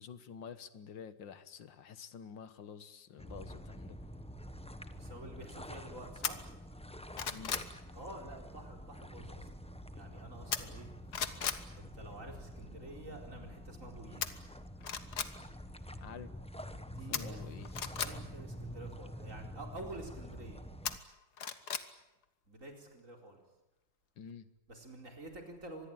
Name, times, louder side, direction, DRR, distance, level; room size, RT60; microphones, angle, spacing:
voice 1, 0.0-4.0 7.3-7.6 16.0-16.3 17.1-17.7 24.2-24.5, left 7 dB, 85° left, 13 dB, 2.1 m, -49 dB
sound 1, 3.2-21.0, equal, 5° left, 0.9 m, -47 dB
voice 2, 5.0-6.4 7.9-9.5 9.9-10.9 11.7-14.4 16.9-17.5 18.0-20.6 22.5-23.4 24.7-25.9, right 2 dB, 45° right, 3 dB, 4.8 m, -49 dB
sound 2, 6.2-6.3 6.8-7.7 10.5-10.9 11.1-11.6 14.2-14.3 14.8-15.3 17.1-18.1 20.8-21.9 22.2-22.3, left 7 dB, 60° left, 1.9 m, -36 dB
25.0 x 21.0 x 9.1 m, 0.95 s
omnidirectional pair, 2.0 m